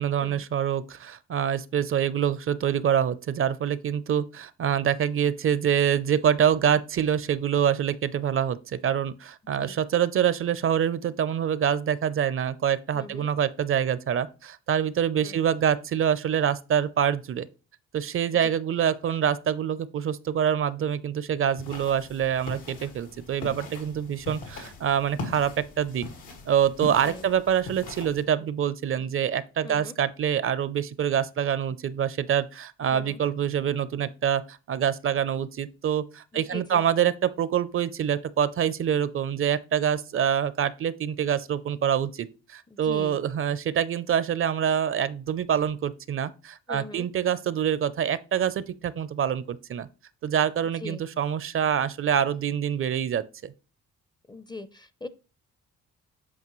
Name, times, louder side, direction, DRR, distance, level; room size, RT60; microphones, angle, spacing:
voice 1, 0.0-17.5 17.9-26.1 26.5-49.9 50.2-53.5, right 9 dB, 45° right, 0.5 m, -26 dB
voice 2, 12.9-13.3 15.2-15.4 27.0-27.3 29.6-30.0 32.9-33.2 36.3-36.8 42.7-43.2 46.7-47.1 50.8-51.0 54.3-55.1, left 3 dB, 15° left, 0.5 m, -41 dB
sound 1, 21.6-28.2, left 3 dB, 85° left, 1.9 m, -40 dB
8.4 x 5.1 x 3.0 m
cardioid pair, 90°, 30 cm